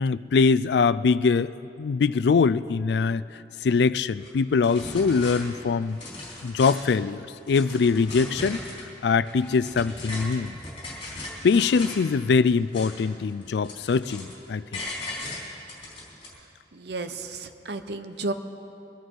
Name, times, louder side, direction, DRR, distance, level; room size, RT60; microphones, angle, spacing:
voice 1, 0.0-1.5 1.8-3.2 3.6-6.0 6.4-8.6 9.0-10.6 11.4-14.8, left 5 dB, 65° left, 16 dB, 0.4 m, -23 dB
sound 1, 4.2-4.3 4.6-5.4 5.8-6.9 7.4-8.9 9.2-12.1 12.4-13.1 13.4-14.4 14.7-16.3, left 2 dB, 30° left, 3.8 m, -38 dB
voice 2, 16.7-18.3, right 2 dB, 65° right, 9 dB, 0.8 m, -33 dB
23.0 x 11.5 x 4.7 m, 2.8 s
head